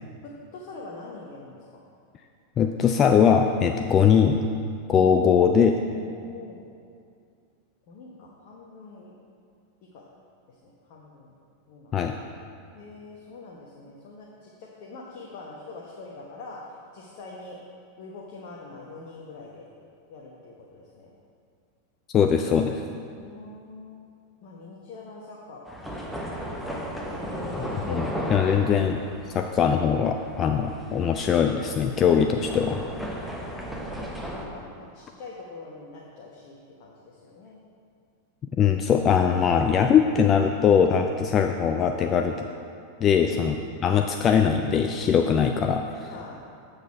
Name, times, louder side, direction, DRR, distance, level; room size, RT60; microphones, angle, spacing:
voice 1, 0.2-1.8 5.1-5.4 6.3-6.6 7.9-9.1 9.8-10.0 10.5-11.3 11.7-12.0 12.7-16.6 16.9-17.6 18.0-19.7 20.1-21.1 23.1-24.0 24.4-26.3 27.0-28.1 28.5-28.6 33.2-34.2 34.5-37.6 43.1-43.4 46.1-46.4, left 3 dB, 45° left, -3 dB, 1.0 m, -44 dB
voice 2, 2.6-4.5 4.9-5.8 11.9-12.1 22.1-22.8 27.9-29.0 29.3-32.8 38.6-42.5 43.0-43.6 43.8-46.1, left 7 dB, 30° left, 4 dB, 0.4 m, -21 dB
sound 1, 25.7-34.5, equal, ahead, 1.1 m, -35 dB
8.1 x 6.7 x 4.5 m, 2.3 s
figure-of-eight pair, 90°, 0 cm